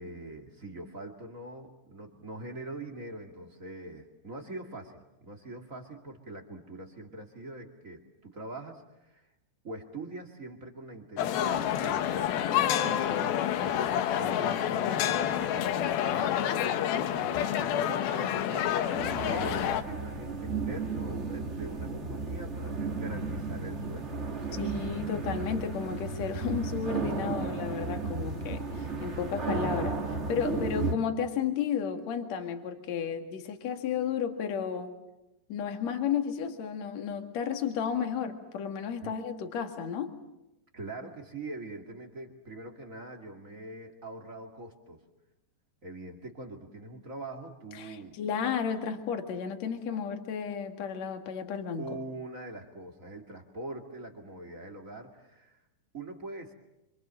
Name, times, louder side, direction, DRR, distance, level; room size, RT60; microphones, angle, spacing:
voice 1, 0.0-9.3 9.6-24.6 39.0-39.1 40.7-45.0 45.8-48.2 51.8-55.6 55.9-56.5, right 2 dB, 30° right, 2 dB, 1.5 m, -43 dB
sound 1, 11.2-19.8, left 10 dB, 70° left, 2.7 m, -28 dB
sound 2, 18.9-30.9, right 4 dB, 65° right, 0.6 m, -34 dB
voice 2, 24.5-34.9 35.5-40.1 47.7-51.9, left 7 dB, 50° left, 5 dB, 2.7 m, -33 dB
27.0 x 26.5 x 7.6 m, 0.94 s
omnidirectional pair, 4.9 m